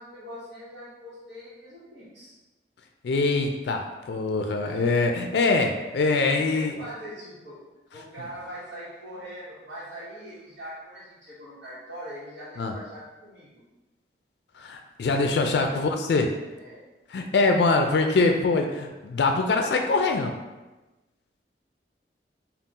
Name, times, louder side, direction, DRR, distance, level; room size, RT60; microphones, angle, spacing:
voice 1, 0.0-2.3 4.6-5.0 6.3-7.6 7.9-13.6 15.5-15.8 16.6-16.8, equal, 80° right, -13 dB, 1.3 m, -42 dB
voice 2, 3.0-6.8 12.6-12.7 14.6-16.3 17.1-20.3, left 3 dB, 70° left, 4 dB, 0.3 m, -23 dB
3.6 x 2.4 x 4.0 m, 1.1 s
head